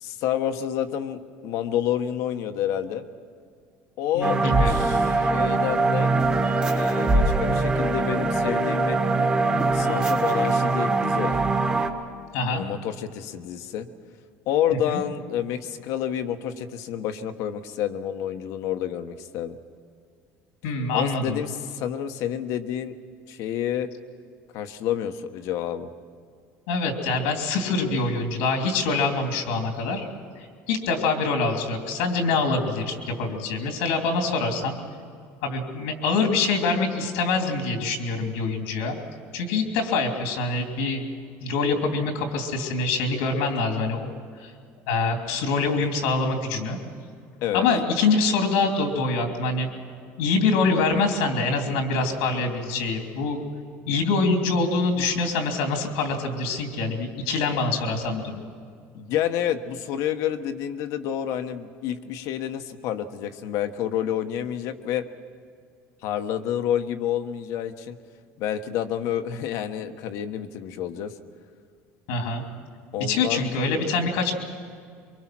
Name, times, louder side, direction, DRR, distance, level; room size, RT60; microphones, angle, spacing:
voice 1, 0.0-3.1 4.0-4.4 4.7-6.1 6.7-9.0 9.7-11.3 12.5-13.9 14.5-19.6 20.9-22.9 23.3-23.9 24.5-25.9 47.4-47.7 58.9-65.0 66.0-68.0 68.4-71.1 72.9-73.6, left 10 dB, 65° left, 8 dB, 1.2 m, -29 dB
voice 2, 4.1-4.9 12.3-12.7 14.9-15.0 20.6-21.4 26.7-30.1 30.4-34.8 35.4-39.0 39.3-41.0 41.4-44.1 44.4-44.5 44.9-46.8 47.5-49.7 50.2-53.4 53.9-58.4 72.1-72.4 73.0-74.3, left 3 dB, 90° left, 4 dB, 3.1 m, -25 dB
sound 1, 4.2-11.9, right 3 dB, 20° right, 1.6 m, -22 dB
24.0 x 23.5 x 6.1 m, 2.2 s
cardioid pair, 130°, 6 cm